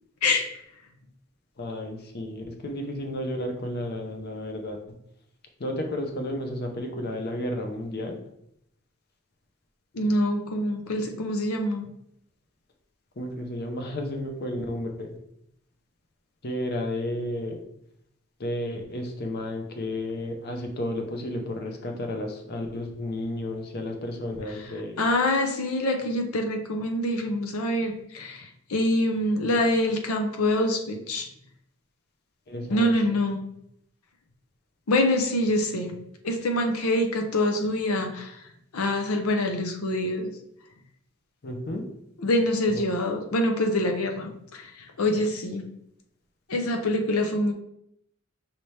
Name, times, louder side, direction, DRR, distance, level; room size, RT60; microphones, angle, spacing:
voice 1, 1.6-4.8 5.6-8.2 13.2-15.1 16.4-17.6 18.4-25.0 32.5-32.9 41.4-41.8 42.7-42.8, left 1 dB, 50° left, 3 dB, 0.7 m, -32 dB
voice 2, 9.9-11.9 25.0-31.3 32.7-33.4 34.9-35.9 36.2-38.4 38.7-40.3 42.2-44.7 45.0-45.6 46.5-47.5, left 1 dB, 85° left, 4 dB, 0.6 m, -25 dB
5.6 x 2.9 x 3.2 m, 0.76 s
head